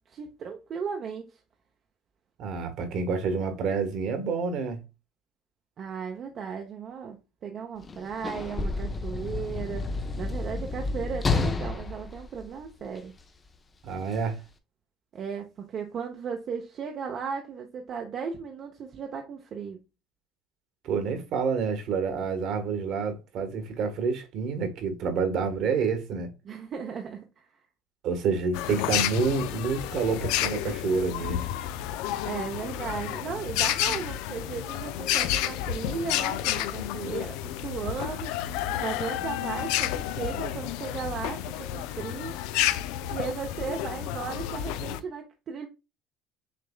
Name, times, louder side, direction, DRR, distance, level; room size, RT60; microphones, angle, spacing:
voice 1, 0.1-1.3 5.8-9.9 10.2-13.1 15.1-19.8 26.4-27.3 32.2-38.3 38.8-41.4 41.7-42.3 43.1-45.7, right 6 dB, 35° right, 0.7 m, -36 dB
voice 2, 2.4-4.8 13.8-14.4 20.8-26.3 28.0-31.5, right 5 dB, 50° right, 1.4 m, -28 dB
Sliding door / Slam, 7.8-13.2 14.1-14.2, left 3 dB, 15° left, 0.6 m, -31 dB
sound 1, 28.5-45.0, left 12 dB, 75° left, 0.5 m, -30 dB
6.6 x 3.3 x 2.3 m
cardioid pair, 165°, 0 cm